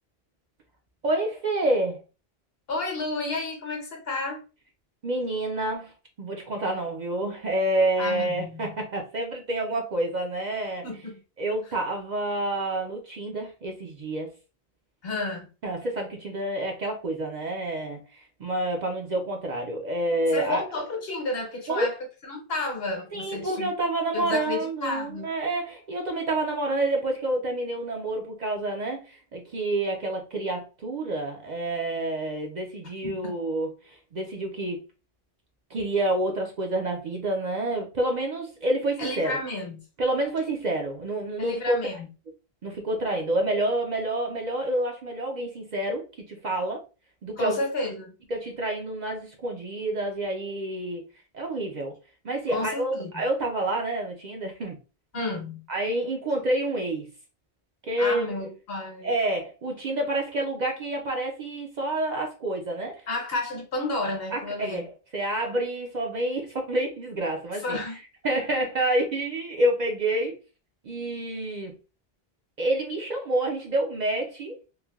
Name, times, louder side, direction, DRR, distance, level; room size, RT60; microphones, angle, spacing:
voice 1, 1.0-2.0 5.0-10.9 11.4-14.3 15.6-20.6 21.7-21.9 23.1-34.8 35.7-39.4 40.0-41.8 42.6-46.8 47.2-47.6 48.3-51.0 51.3-52.0 52.2-54.8 55.7-57.1 57.8-58.3 59.0-63.0 64.3-67.8 68.2-70.4 70.8-71.7 72.6-74.6, right 1 dB, 55° right, 0.5 m, -28 dB
voice 2, 2.7-4.4 8.0-8.7 10.8-11.2 15.0-15.5 20.3-22.0 22.2-23.7 24.1-25.3 33.0-33.3 39.0-39.8 41.4-42.1 47.4-48.1 52.5-53.2 55.1-55.6 58.0-59.1 63.1-64.8 67.6-68.0, left 2 dB, 65° left, 1.1 m, -31 dB
3.1 x 2.1 x 2.3 m
omnidirectional pair, 1.1 m